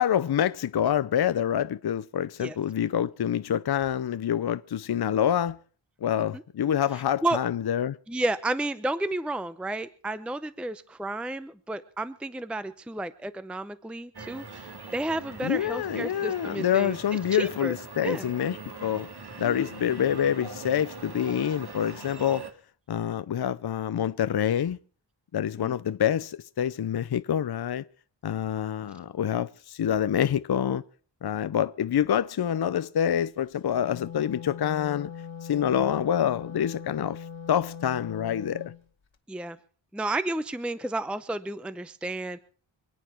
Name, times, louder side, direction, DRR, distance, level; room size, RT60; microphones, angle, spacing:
voice 1, 0.0-5.6 6.0-8.0 15.4-19.1 19.4-22.4 22.9-24.8 25.3-27.8 28.2-30.8 31.2-35.1 35.4-38.7, left 9 dB, 55° left, 0.6 m, -26 dB
voice 2, 8.1-17.0 17.3-17.7 18.0-18.3 19.4-19.7 25.6-25.7 39.3-39.6 39.9-42.4, right 2 dB, ahead, 0.6 m, -31 dB
sound 1, 14.1-22.5, right 4 dB, 55° right, 2.0 m, -42 dB
Wind instrument woodwind instrument, 33.6-38.8, left 7 dB, 70° left, 1.4 m, -40 dB
27.0 x 9.1 x 4.4 m
wide cardioid pair, 70°, 47 cm